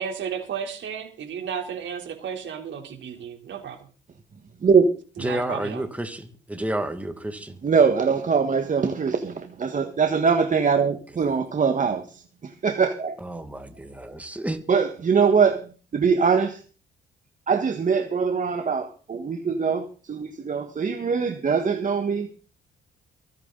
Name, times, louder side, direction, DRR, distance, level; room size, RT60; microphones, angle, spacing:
voice 1, 0.0-3.8 5.2-5.8, right 7 dB, 70° right, 3.5 m, -33 dB
voice 2, 5.2-7.5 13.2-14.6, right 1 dB, 5° right, 1.9 m, -31 dB
voice 3, 7.6-13.1 14.7-15.6 15.9-16.6 17.5-22.3, right 5 dB, 40° right, 1.6 m, -22 dB
24.0 x 9.5 x 4.0 m
cardioid pair, 90°, 20 cm